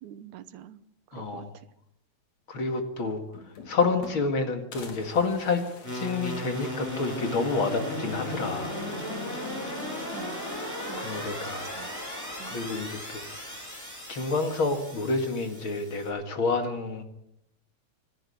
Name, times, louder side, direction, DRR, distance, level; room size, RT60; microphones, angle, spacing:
voice 1, 0.0-0.8 1.1-1.7 10.1-10.4 10.8-11.9 12.4-12.6, right 11 dB, 85° right, 14 dB, 2.4 m, -46 dB
voice 2, 1.1-1.5 2.5-3.2 3.7-5.6 5.9-8.8 11.0-11.8 12.4-13.6 14.1-17.0, left 3 dB, 45° left, 6 dB, 2.5 m, -29 dB
sound 1, 2.7-2.8 3.1-4.4 4.7-7.3 7.7-7.8 8.1-8.2 9.3-9.8 10.2-10.9 12.0-12.5, left 4 dB, 70° left, 3.9 m, -48 dB
sound 2, 5.8-16.1, left 1 dB, 5° left, 8.0 m, -36 dB
26.0 x 12.0 x 8.5 m, 0.79 s
omnidirectional pair, 3.4 m